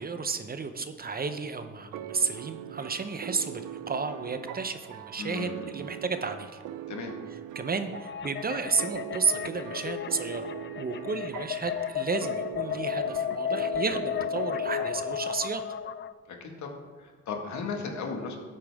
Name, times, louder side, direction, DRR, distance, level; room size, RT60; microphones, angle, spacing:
voice 1, 0.0-6.5 7.5-15.6, right 4 dB, 30° right, 9 dB, 0.8 m, -32 dB
sound 1, 1.9-15.6, right 11 dB, 85° right, 0.5 m, -42 dB
voice 2, 5.2-5.7 6.9-7.1 16.3-18.4, left 4 dB, 70° left, 2 dB, 1.9 m, -36 dB
sound 2, 7.9-16.1, left 8 dB, 40° left, 0.4 m, -33 dB
12.0 x 8.7 x 3.6 m, 1.5 s
cardioid pair, 90°, 30 cm